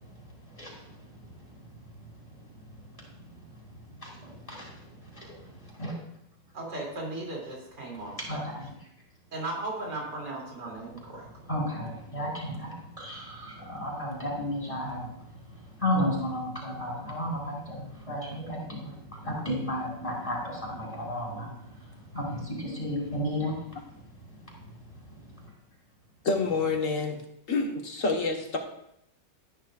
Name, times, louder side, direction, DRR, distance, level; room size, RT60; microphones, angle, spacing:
voice 1, 4.0-4.7 5.8-5.9 8.3-8.7 11.5-15.1 15.8-18.9 19.2-21.5 22.1-23.6, equal, 20° left, -4 dB, 3.8 m, -32 dB
voice 2, 6.5-8.4 9.3-11.3, right 2 dB, 70° right, -3 dB, 3.6 m, -36 dB
voice 3, 26.2-27.2 27.5-28.6, left 3 dB, 50° left, 2 dB, 1.6 m, -27 dB
13.5 x 10.0 x 2.5 m, 0.77 s
omnidirectional pair, 1.9 m